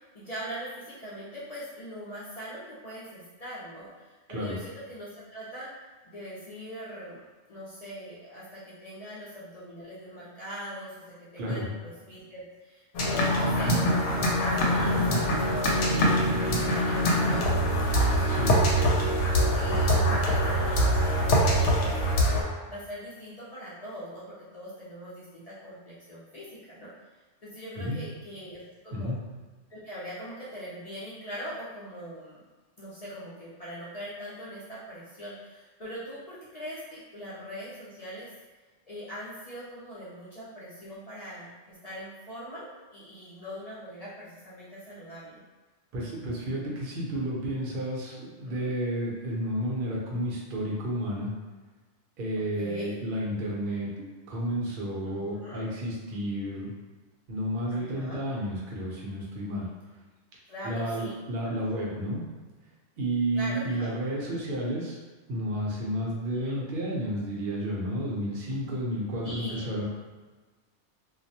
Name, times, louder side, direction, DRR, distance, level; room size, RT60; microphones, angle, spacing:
voice 1, 0.0-5.7 6.0-7.2 7.5-18.9 19.3-22.4 22.7-26.9 27.4-29.2 29.7-32.4 32.8-38.3 38.9-45.4 48.4-48.7 52.6-52.9 55.0-55.7 57.7-58.2 60.5-61.2 61.5-61.7 63.3-63.9 66.0-66.6 69.2-69.8, equal, 45° left, -10 dB, 0.5 m, -41 dB
voice 2, 11.4-11.7 18.3-18.6 27.8-28.0 28.9-29.2 45.9-51.3 52.2-56.7 57.3-59.7 60.6-62.2 63.0-65.0 65.3-69.8, equal, 55° right, -4 dB, 0.7 m, -31 dB
sound 1, 12.9-22.4, equal, 75° left, 0.9 m, -24 dB
2.3 x 2.0 x 2.7 m, 1.3 s
omnidirectional pair, 1.2 m